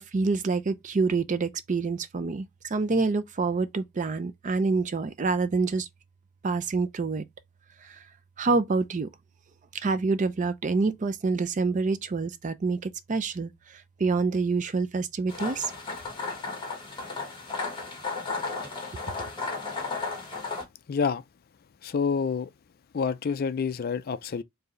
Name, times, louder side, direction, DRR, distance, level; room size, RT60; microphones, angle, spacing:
voice 1, 0.0-5.9 6.4-7.3 7.8-8.0 8.4-9.1 9.7-15.7, right 4 dB, 35° right, 0.4 m, -27 dB
sound 1, 15.3-20.6, left 4 dB, 25° left, 1.4 m, -34 dB
voice 2, 20.9-21.2 21.8-22.5 22.9-24.4, left 5 dB, 45° left, 0.4 m, -28 dB
4.6 x 2.7 x 3.1 m
head